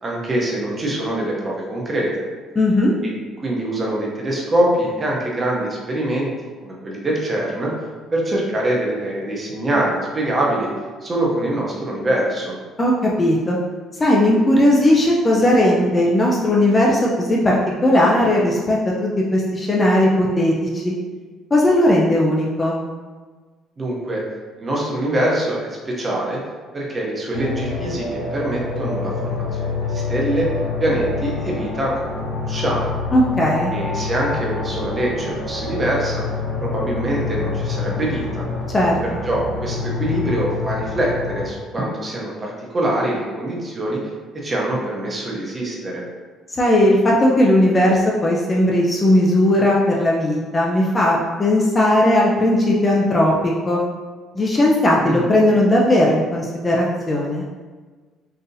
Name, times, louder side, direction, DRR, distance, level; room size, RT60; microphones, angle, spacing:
voice 1, 0.0-2.3 3.0-3.1 3.4-6.3 6.6-7.7 8.1-10.7 11.0-12.6 23.8-24.2 24.6-26.4 26.7-30.5 30.8-32.9 33.7-36.2 36.6-38.4 39.0-44.0 44.3-46.0 55.0-55.3, right 1 dB, 25° right, -3 dB, 0.6 m, -24 dB
voice 2, 2.6-2.9 12.8-13.6 14.0-20.9 21.5-22.8 33.1-33.7 38.7-39.0 46.5-53.8 54.3-57.4, left 1 dB, 20° left, -3 dB, 0.3 m, -17 dB
sound 1, 27.3-41.5, left 4 dB, 70° left, 0.5 m, -27 dB
3.8 x 2.7 x 2.6 m, 1.4 s
cardioid pair, 155°, 0 cm